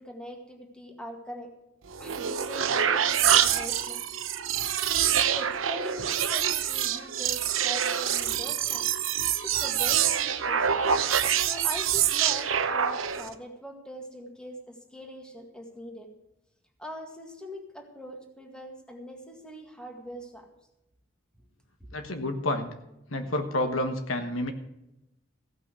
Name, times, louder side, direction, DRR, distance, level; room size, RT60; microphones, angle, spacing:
voice 1, 0.0-1.5 2.0-4.0 5.3-8.9 9.4-10.8 11.4-16.1 16.8-20.5 21.8-21.9, equal, 5° left, 2 dB, 1.9 m, -42 dB
sound 1, 1.9-13.3, right 9 dB, 85° right, 0.8 m, -26 dB
voice 2, 21.9-22.7 23.1-24.5, left 1 dB, 80° left, 6 dB, 1.4 m, -29 dB
15.5 x 5.9 x 8.3 m, 0.88 s
head